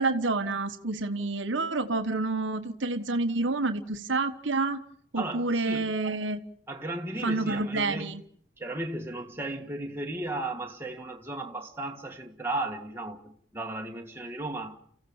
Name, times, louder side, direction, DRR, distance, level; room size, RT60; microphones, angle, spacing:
voice 1, 0.0-4.8 5.1-6.4 7.2-8.2, right 3 dB, 70° right, 1.3 m, -28 dB
voice 2, 5.2-5.9 6.7-8.1 8.6-14.8, right 2 dB, 10° right, 1.7 m, -35 dB
30.0 x 15.5 x 7.2 m
head